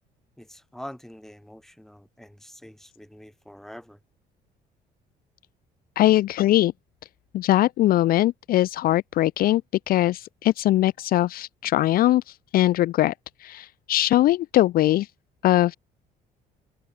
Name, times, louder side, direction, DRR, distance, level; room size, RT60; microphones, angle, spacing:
voice 1, 0.4-4.0, equal, ahead, 4.8 m, -44 dB
voice 2, 6.0-6.7 7.3-9.6 9.9-13.1 13.4-15.1 15.4-15.8, left 15 dB, 60° left, 0.5 m, -21 dB
cardioid pair, 110°, 17 cm